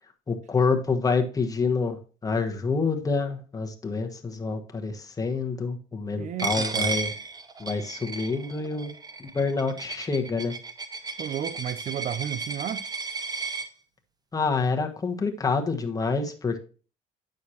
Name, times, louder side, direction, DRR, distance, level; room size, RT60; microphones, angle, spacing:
voice 1, 0.3-2.0 2.2-7.1 7.6-8.9 9.2-10.5 14.3-16.6, left 4 dB, 20° left, 1.3 m, -27 dB
voice 2, 6.2-6.9 11.2-12.8, right 10 dB, 45° right, 0.5 m, -32 dB
Coin (dropping), 6.4-13.7, right 4 dB, 25° right, 0.8 m, -34 dB
9.2 x 6.5 x 2.8 m
cardioid pair, 110°, 17 cm